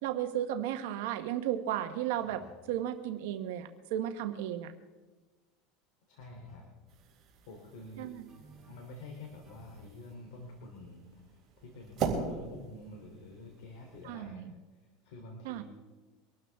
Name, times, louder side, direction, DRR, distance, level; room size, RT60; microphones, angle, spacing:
voice 1, 0.0-2.4 2.7-4.7 8.0-8.2 14.0-14.5 15.4-15.6, right 11 dB, 75° right, 7 dB, 1.0 m, -34 dB
sound 1, 2.2-2.7 6.2-6.8 8.3-8.9 9.4-10.0, right 2 dB, 5° right, 6.6 m, -57 dB
voice 2, 6.1-6.6 7.5-8.1 8.7-15.6, left 2 dB, 75° left, 1 dB, 3.1 m, -48 dB
sound 2, 6.9-14.1, right 5 dB, 35° right, 3.7 m, -41 dB
24.0 x 12.5 x 3.5 m, 1.2 s
supercardioid pair, 145°, 0 cm